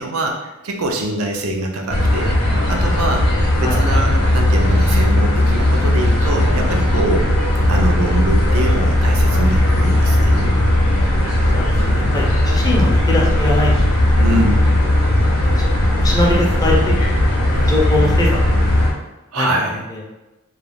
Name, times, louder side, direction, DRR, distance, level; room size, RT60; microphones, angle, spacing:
voice 1, 0.0-2.3 2.7-3.3 3.6-7.3 7.7-10.5 14.2-14.7 19.3-19.8, right 1 dB, 80° right, 2 dB, 0.5 m, -23 dB
sound 1, 1.9-18.9, left 1 dB, 85° left, 0.7 m, -16 dB
voice 2, 11.5-13.9 14.3-14.4 15.0-17.0 17.5-18.9 19.4-20.0, left 1 dB, 15° left, -4 dB, 0.5 m, -23 dB
2.3 x 2.3 x 3.3 m, 1.0 s
head